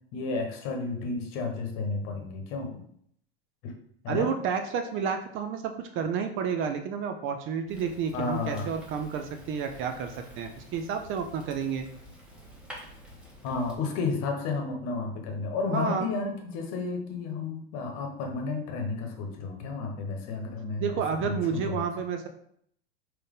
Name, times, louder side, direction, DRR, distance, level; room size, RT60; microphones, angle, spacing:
voice 1, 0.1-2.8 3.6-3.7 4.0-4.3 8.1-8.7 13.4-20.9 21.2-21.8, left 4 dB, 55° left, 3 dB, 1.1 m, -32 dB
voice 2, 4.1-11.9 15.7-16.1 20.8-22.3, right 6 dB, 40° right, 6 dB, 0.5 m, -30 dB
Fire, 7.7-13.8, equal, 5° right, 1.2 m, -49 dB
3.6 x 2.8 x 3.6 m, 0.66 s
hypercardioid pair, 95°, 32 cm